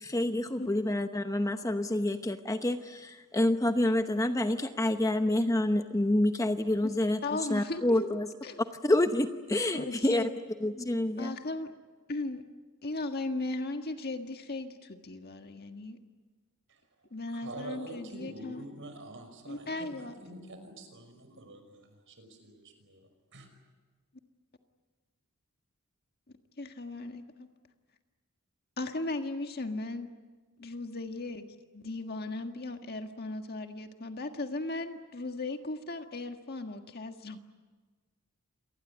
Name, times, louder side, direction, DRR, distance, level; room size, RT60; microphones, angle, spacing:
voice 1, 0.0-8.3 8.8-10.3 10.6-11.4, left 1 dB, 15° left, 7 dB, 0.9 m, -28 dB
voice 2, 7.2-8.1 8.4-8.6 9.7-10.3 11.2-11.7 12.1-12.4 12.8-16.0 17.1-18.6 19.5-20.1 26.6-27.5 28.8-30.1 30.6-31.5 31.7-37.4, left 2 dB, 45° left, 6 dB, 1.7 m, -37 dB
voice 3, 17.3-23.0 23.3-23.5, right 1 dB, 60° right, 7 dB, 5.7 m, -46 dB
27.5 x 19.5 x 9.9 m, 1.3 s
head